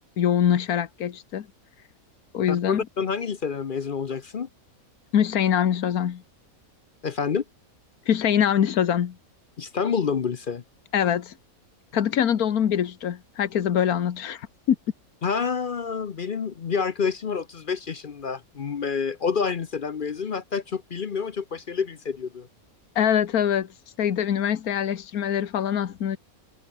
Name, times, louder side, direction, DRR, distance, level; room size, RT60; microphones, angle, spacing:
voice 1, 0.2-1.5 2.3-2.8 5.1-6.2 8.1-9.2 10.9-11.3 11.9-14.8 22.9-23.7 24.0-26.2, left 9 dB, 85° left, 1.6 m, -23 dB
voice 2, 2.5-4.5 7.0-7.4 9.6-10.6 15.2-22.5, left 6 dB, 45° left, 0.8 m, -28 dB
omnidirectional pair, 1.5 m